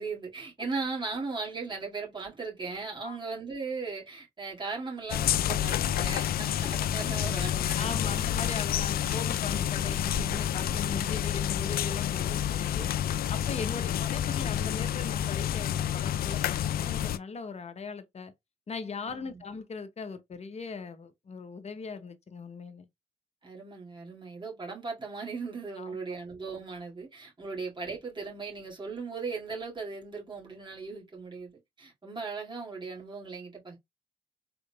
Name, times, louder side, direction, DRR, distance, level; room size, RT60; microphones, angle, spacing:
voice 1, 0.0-8.2 13.6-13.9 19.0-19.4 23.4-33.8, right 4 dB, 30° right, 2.0 m, -38 dB
sound 1, 5.1-17.2, left 10 dB, 65° left, 0.4 m, -29 dB
voice 2, 7.8-12.9 13.3-18.3 18.7-22.9 25.8-26.0, left 4 dB, 40° left, 0.8 m, -39 dB
3.8 x 3.6 x 2.2 m
supercardioid pair, 65°, 17 cm